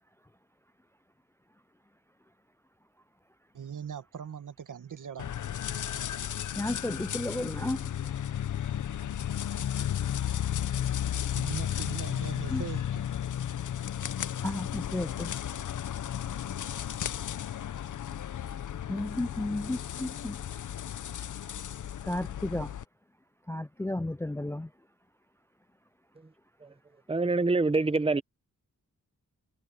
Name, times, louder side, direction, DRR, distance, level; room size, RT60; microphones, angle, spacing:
voice 1, 3.5-5.3 6.3-6.4 11.0-13.1, right 8 dB, 75° right, 1.8 m, -41 dB
sound 1, 5.2-22.8, left 10 dB, 70° left, 0.7 m, -34 dB
voice 2, 6.6-7.9 12.5-12.6 14.4-15.3 18.9-20.4 22.0-22.7 23.5-24.7, left 1 dB, 10° left, 0.4 m, -33 dB
voice 3, 27.1-28.2, right 3 dB, 20° right, 0.9 m, -25 dB
wide cardioid pair, 85°, 31 cm